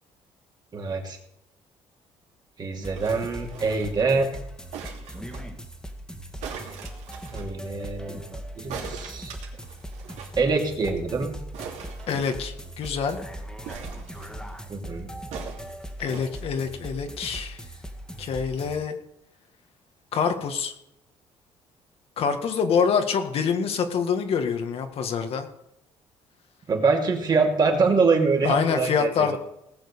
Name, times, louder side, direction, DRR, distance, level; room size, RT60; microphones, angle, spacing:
voice 1, 0.7-1.2 2.6-4.3 7.3-9.3 10.4-11.3 14.7-15.1 26.7-29.4, right 4 dB, 40° right, 2 dB, 2.7 m, -24 dB
sound 1, 2.8-18.8, right 1 dB, 5° left, 2.0 m, -39 dB
sound 2, 2.9-4.0 4.7-5.5 6.4-7.5 8.7-10.4 10.7-10.8 11.0-11.1 11.5-12.7 13.6-14.6 15.3-16.3 17.0-17.1, right 6 dB, 85° right, 2.9 m, -40 dB
voice 2, 12.1-13.2 16.0-17.6 18.2-19.0 20.1-20.7 22.2-25.5 28.4-29.4, left 6 dB, 60° left, 6 dB, 1.8 m, -26 dB
18.5 x 6.6 x 6.8 m, 0.80 s
cardioid pair, 105°, 11 cm